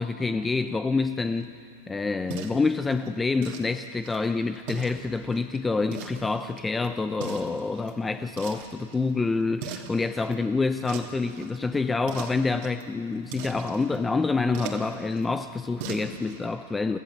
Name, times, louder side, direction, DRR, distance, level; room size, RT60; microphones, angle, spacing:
voice 1, 0.0-1.6 1.9-17.0, left 3 dB, 10° left, 9 dB, 0.6 m, -27 dB
water slushing slow and steady, 1.2-16.5, right 6 dB, 55° right, 2.8 m, -43 dB
29.5 x 14.5 x 7.3 m, 2.5 s
hypercardioid pair, 125°, 0 cm